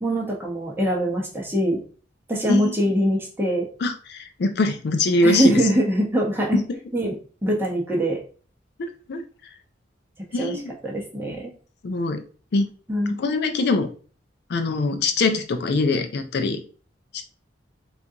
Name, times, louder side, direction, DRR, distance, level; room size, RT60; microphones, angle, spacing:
voice 1, 0.0-1.8 2.3-3.7 5.2-6.6 6.9-7.2 7.4-8.2 10.4-10.5 10.8-11.5 12.9-13.2, equal, 10° right, -2 dB, 0.8 m, -23 dB
voice 2, 3.8-5.6 6.5-6.6 8.8-9.5 10.3-10.7 11.8-12.2 12.5-12.7 13.1-13.9 14.5-16.6 17.1-17.2, left 2 dB, 60° left, 6 dB, 0.4 m, -23 dB
3.7 x 2.4 x 2.7 m, 0.39 s
head